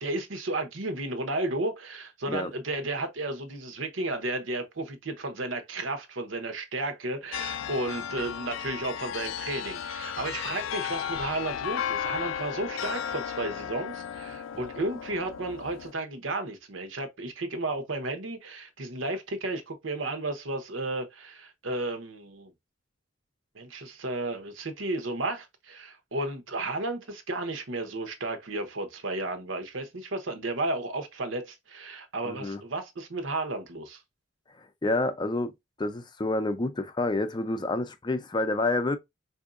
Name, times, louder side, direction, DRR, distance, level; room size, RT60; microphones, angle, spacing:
voice 1, 0.0-22.5 23.5-34.0, right 2 dB, 85° right, 1.0 m, -33 dB
sound 1, 7.3-15.9, left 8 dB, 80° left, 0.4 m, -34 dB
voice 2, 32.2-32.6 34.8-35.5 35.8-39.0, left 2 dB, 25° left, 0.5 m, -28 dB
4.6 x 2.7 x 2.4 m
head